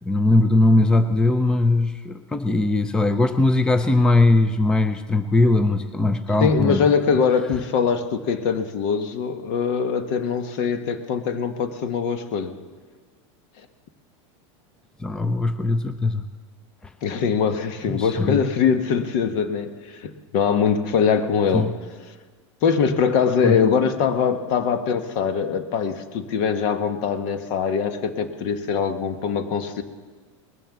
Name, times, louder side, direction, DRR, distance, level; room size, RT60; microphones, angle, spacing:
voice 1, 0.0-6.9 15.0-16.3 16.8-16.9 17.9-18.4 21.5-21.7 23.4-23.6, left 2 dB, 5° left, 10 dB, 0.5 m, -20 dB
voice 2, 6.4-12.6 17.0-21.7 22.6-29.8, left 6 dB, 55° left, 9 dB, 1.4 m, -22 dB
20.0 x 7.2 x 7.3 m, 1.5 s
supercardioid pair, 135°, 16 cm